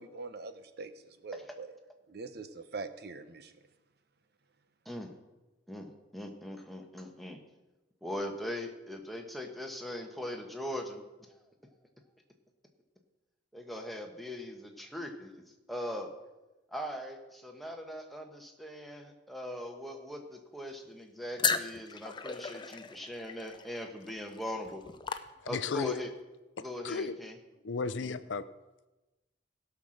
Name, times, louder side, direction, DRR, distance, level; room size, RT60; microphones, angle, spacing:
voice 1, 0.0-1.7 2.1-3.5, right 3 dB, 60° right, 11 dB, 0.8 m, -43 dB
voice 2, 4.8-5.2 5.7-7.4 8.0-11.0 11.3-11.4 13.5-15.4 15.7-16.1 16.7-24.8 25.5-26.1 26.6-27.4 28.0-28.1, left 1 dB, ahead, 2 dB, 1.2 m, -40 dB
sound 1, 21.4-25.9, left 6 dB, 25° left, 0.5 m, -36 dB
voice 3, 25.4-26.0 26.8-27.2 27.6-28.4, left 4 dB, 85° left, 14 dB, 0.6 m, -34 dB
16.5 x 5.9 x 6.4 m, 1.1 s
head